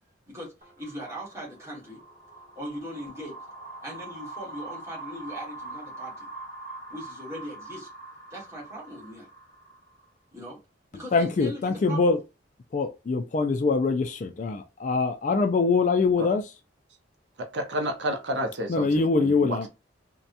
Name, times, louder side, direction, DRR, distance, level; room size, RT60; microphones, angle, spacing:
voice 1, 0.3-2.0 2.5-3.4 3.8-6.3 6.9-7.9 8.3-9.3 10.3-10.6 10.9-12.0, equal, 15° right, 1.3 m, -39 dB
sound 1, 0.6-10.1, right 2 dB, 40° right, 1.0 m, -43 dB
voice 2, 11.1-12.2 12.7-16.5 18.7-19.7, left 4 dB, 40° left, 0.3 m, -24 dB
voice 3, 17.5-19.6, equal, 65° right, 0.6 m, -30 dB
2.8 x 2.2 x 2.4 m
head